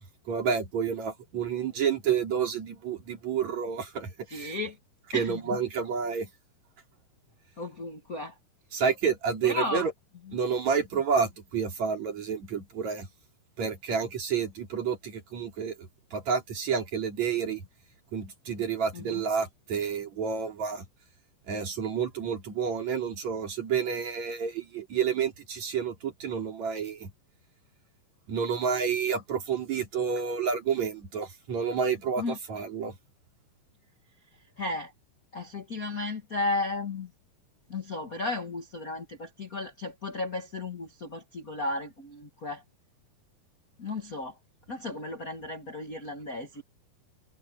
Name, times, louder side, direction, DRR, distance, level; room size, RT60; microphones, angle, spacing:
voice 1, 0.3-4.6 5.1-6.3 8.7-9.9 10.3-13.1 13.6-17.6 18.1-20.8 21.5-27.1 28.3-33.0, right 6 dB, 45° right, 4.4 m, -29 dB
voice 2, 4.3-4.8 5.1-5.4 7.6-8.3 9.4-9.8 18.9-19.2 32.2-32.4 34.6-34.9 35.3-37.1 37.7-42.6 43.8-44.3 44.7-46.6, left 2 dB, 45° left, 1.1 m, -34 dB
omnidirectional pair, 4.6 m